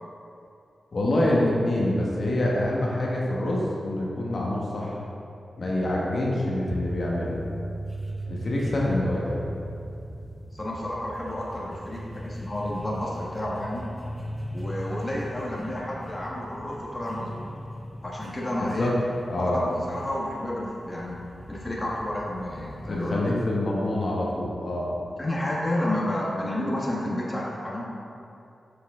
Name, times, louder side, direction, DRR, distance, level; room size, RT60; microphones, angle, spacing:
voice 1, 0.9-4.9 5.6-7.4 8.3-9.5 18.6-19.0 19.3-19.6 22.9-24.9, left 1 dB, 60° left, -4 dB, 1.4 m, -26 dB
sound 1, 6.7-23.5, equal, 5° left, 0.6 m, -38 dB
voice 2, 10.5-13.9 14.5-17.4 18.0-18.9 19.4-21.2 21.5-23.2 25.2-27.8, left 1 dB, 25° left, -4 dB, 1.3 m, -30 dB
7.4 x 6.8 x 3.6 m, 2.7 s
cardioid pair, 75°, 0 cm